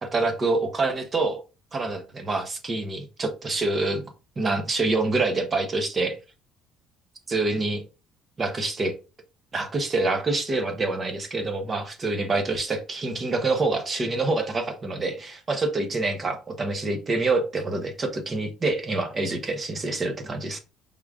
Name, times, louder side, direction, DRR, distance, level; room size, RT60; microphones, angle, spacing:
voice 1, 0.0-1.4 1.7-4.0 4.4-6.2 7.3-7.8 8.4-8.9 9.5-20.6, right 3 dB, 25° right, 6 dB, 0.8 m, -26 dB
4.9 x 3.6 x 2.4 m, 0.32 s
cardioid pair, 135°, 0 cm